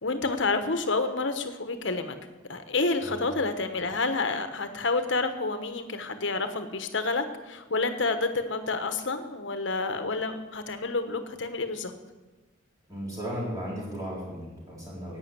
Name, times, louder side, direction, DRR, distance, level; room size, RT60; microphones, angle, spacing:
voice 1, 0.0-2.2 2.5-11.9, left 3 dB, 65° left, 8 dB, 1.2 m, -29 dB
voice 2, 12.9-15.2, equal, 15° right, -5 dB, 4.1 m, -35 dB
11.5 x 8.8 x 8.1 m, 1.2 s
head